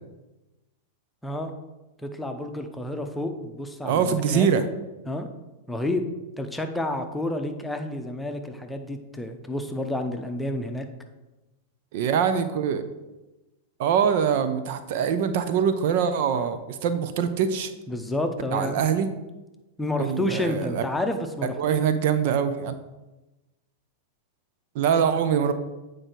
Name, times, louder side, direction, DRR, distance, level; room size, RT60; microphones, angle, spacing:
voice 1, 2.0-4.5 5.1-5.3 5.7-6.1 6.4-10.9 16.3-16.5 17.9-18.8 19.8-21.6, left 1 dB, 5° left, 5 dB, 0.9 m, -30 dB
voice 2, 3.8-4.6 11.9-12.9 13.8-17.7 18.5-19.1 20.0-20.9 21.4-22.8 24.7-25.5, right 7 dB, 50° right, 10 dB, 0.6 m, -23 dB
8.8 x 4.8 x 4.5 m, 1.1 s
figure-of-eight pair, 95°, 0 cm